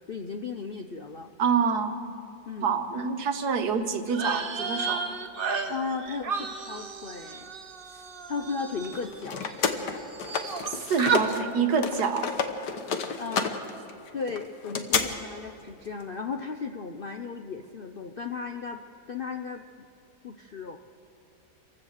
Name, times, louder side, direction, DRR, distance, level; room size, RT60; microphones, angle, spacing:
voice 1, 0.1-1.3 2.5-2.7 5.7-7.5 7.8-9.4 13.2-13.8 14.1-18.8 19.1-19.9 20.2-20.8, left 5 dB, 55° left, 5 dB, 0.6 m, -36 dB
voice 2, 1.4-2.0 2.6-5.0 10.7-12.3, right 6 dB, 70° right, 7 dB, 1.7 m, -27 dB
sound 1, 4.1-9.7 10.0-10.7 11.0-11.2, right 5 dB, 40° right, 1.0 m, -32 dB
sound 2, 8.8-11.4 11.7-15.0, left 6 dB, 75° left, 1.7 m, -30 dB
26.0 x 15.5 x 6.5 m, 2.6 s
omnidirectional pair, 1.8 m